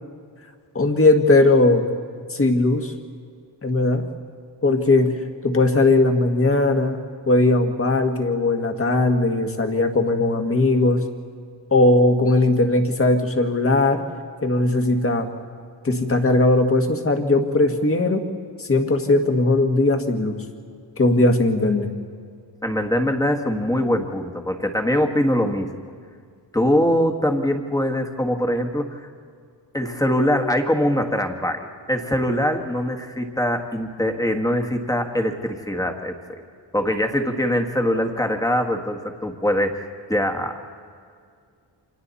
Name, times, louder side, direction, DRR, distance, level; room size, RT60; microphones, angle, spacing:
voice 1, 0.8-1.9 2.3-2.9 3.6-4.0 4.6-5.1 5.4-7.0 7.3-11.0 11.7-14.0 14.4-15.3 15.8-18.2 18.6-20.4 21.0-21.9, left 2 dB, 30° left, 5 dB, 1.8 m, -18 dB
voice 2, 22.6-25.7 26.5-29.1 29.7-36.1 36.7-40.6, equal, 10° left, 4 dB, 1.6 m, -22 dB
28.5 x 26.5 x 4.2 m, 2.2 s
wide cardioid pair, 155°, 43 cm